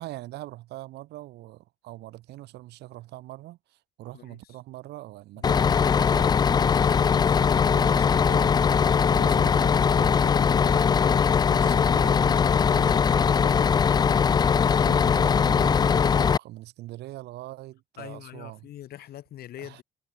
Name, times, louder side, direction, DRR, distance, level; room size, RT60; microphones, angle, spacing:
voice 1, 0.0-13.9 14.2-18.7 19.6-19.8, right 17 dB, 80° right, 6.2 m, -43 dB
voice 2, 4.1-4.6 5.4-5.7 18.0-19.8, left 12 dB, 65° left, 7.7 m, -43 dB
Bus, 5.4-16.4, left 6 dB, 25° left, 0.4 m, -21 dB
cardioid pair, 110°, 17 cm